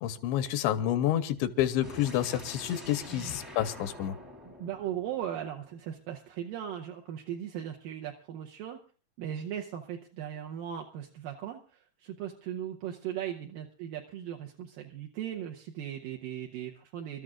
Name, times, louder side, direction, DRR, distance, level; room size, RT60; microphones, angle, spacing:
voice 1, 0.0-4.2, left 11 dB, 85° left, 11 dB, 3.1 m, -29 dB
sound 1, 1.8-5.8, equal, 10° right, 0.9 m, -47 dB
voice 2, 4.4-8.8 9.2-17.2, right 10 dB, 80° right, 1 dB, 2.0 m, -38 dB
28.5 x 13.0 x 2.5 m, 0.36 s
omnidirectional pair, 5.1 m